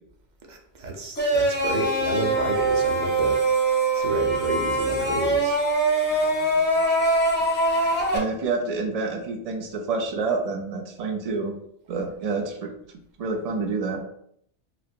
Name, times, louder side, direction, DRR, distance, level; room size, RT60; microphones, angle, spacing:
voice 1, 0.5-3.4 3.9-5.6, right 1 dB, 50° right, 2 dB, 0.6 m, -30 dB
sound 1, 1.1-8.2, right 2 dB, 10° left, 0.5 m, -23 dB
voice 2, 8.1-11.5 11.9-12.7 13.2-14.0, right 4 dB, 85° right, 4 dB, 0.3 m, -28 dB
3.3 x 2.5 x 2.7 m, 0.70 s
omnidirectional pair, 1.2 m